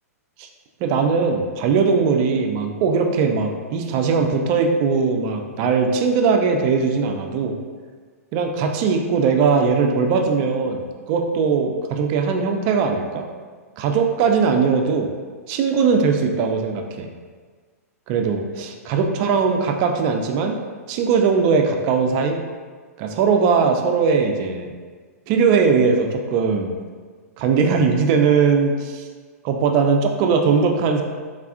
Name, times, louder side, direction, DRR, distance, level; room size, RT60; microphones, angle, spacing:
voice 1, 0.8-7.5 8.3-13.3 13.8-15.1 15.5-17.1 18.1-20.6 20.9-22.4 23.0-24.7 25.3-26.7 27.4-29.0 29.4-31.0, right 5 dB, 40° right, 4 dB, 0.3 m, -20 dB
3.5 x 2.3 x 2.4 m, 1.5 s
hypercardioid pair, 110°, 8 cm